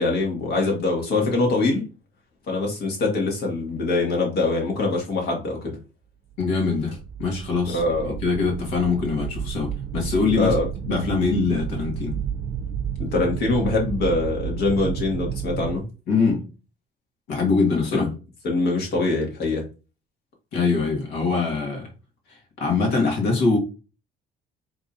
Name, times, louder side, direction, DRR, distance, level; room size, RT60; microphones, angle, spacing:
voice 1, 0.0-1.8 2.5-5.8 7.6-8.1 10.3-10.7 13.0-15.8 17.9-18.1 18.4-19.6, left 3 dB, 70° left, 2.1 m, -23 dB
voice 2, 6.4-10.5 10.9-12.2 16.1-16.5 17.3-18.1 20.5-21.9 22.3-23.6, left 4 dB, 90° left, 1.8 m, -23 dB
sound 1, 6.8-15.8, right 8 dB, 60° right, 0.6 m, -31 dB
5.1 x 3.5 x 2.6 m
cardioid pair, 110°, 17 cm